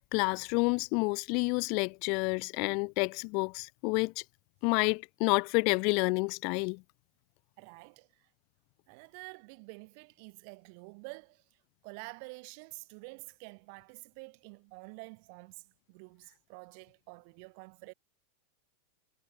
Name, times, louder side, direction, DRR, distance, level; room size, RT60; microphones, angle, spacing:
voice 1, 0.0-4.2 4.6-6.8, left 33 dB, 50° left, 1.9 m, -29 dB
voice 2, 7.6-8.1 8.9-11.4 11.8-15.6 15.9-17.9, right 35 dB, 55° right, 7.8 m, -48 dB
figure-of-eight pair, 90°, 0 cm